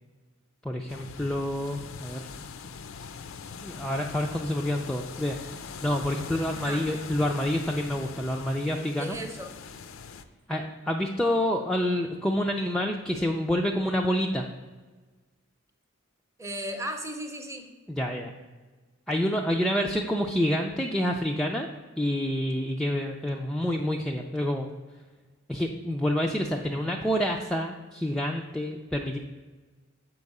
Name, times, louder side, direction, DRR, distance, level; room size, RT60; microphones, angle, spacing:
voice 1, 0.6-2.3 3.6-9.2 10.5-14.5 17.9-18.3 19.1-21.7 22.0-24.7 25.5-29.2, equal, 5° left, 0 dB, 0.3 m, -28 dB
sound 1, 0.9-10.2, left 5 dB, 70° left, 0.5 m, -42 dB
voice 2, 6.5-6.9 9.0-9.5 16.4-17.7, right 1 dB, 15° right, 5 dB, 0.7 m, -35 dB
7.5 x 4.8 x 5.3 m, 1.3 s
head